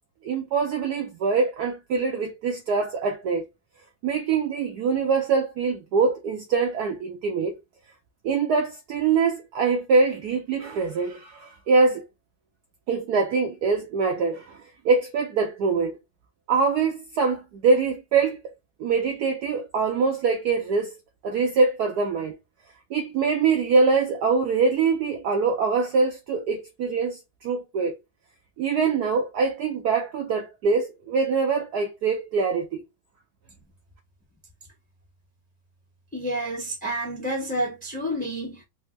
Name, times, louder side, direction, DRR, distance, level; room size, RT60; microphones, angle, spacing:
voice 1, 0.2-3.4 4.0-7.5 8.2-12.1 12.9-16.0 16.5-18.4 18.8-20.9 21.2-22.4 22.9-27.9 28.6-32.8, right 4 dB, 70° right, 0.9 m, -24 dB
voice 2, 36.1-38.6, right 1 dB, 5° left, 0.7 m, -29 dB
3.4 x 2.0 x 3.1 m
omnidirectional pair, 2.1 m